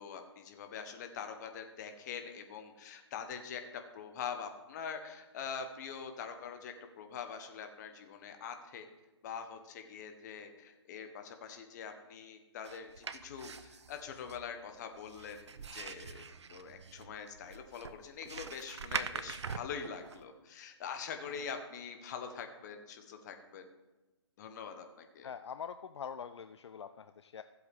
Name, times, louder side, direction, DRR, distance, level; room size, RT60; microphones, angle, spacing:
voice 1, 0.0-8.9 9.2-16.2 16.5-23.7 24.4-25.3, left 6 dB, 35° left, 6 dB, 1.3 m, -44 dB
sound 1, 12.6-20.2, right 5 dB, 70° right, 0.7 m, -43 dB
voice 2, 25.2-27.4, left 7 dB, 70° left, 11 dB, 0.4 m, -44 dB
15.0 x 7.9 x 3.6 m, 1.1 s
figure-of-eight pair, 140°, 15 cm